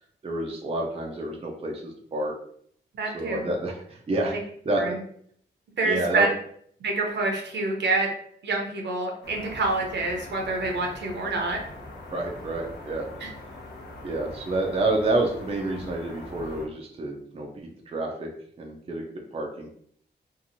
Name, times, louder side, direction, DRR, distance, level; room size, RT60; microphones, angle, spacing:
voice 1, 0.2-2.3 3.1-4.4 4.7-4.9 5.8-6.3 12.1-13.1 14.0-18.3 18.6-19.7, right 2 dB, 30° right, 0 dB, 0.5 m, -29 dB
voice 2, 2.9-3.5 4.3-4.4 4.8-5.0 5.8-6.3 6.8-8.1 8.4-11.6 13.2-13.3, right 3 dB, 70° right, 1 dB, 0.8 m, -27 dB
sound 1, 9.2-16.7, left 2 dB, 65° left, 0.8 m, -42 dB
2.9 x 2.6 x 2.6 m, 0.63 s
cardioid pair, 85°, 19 cm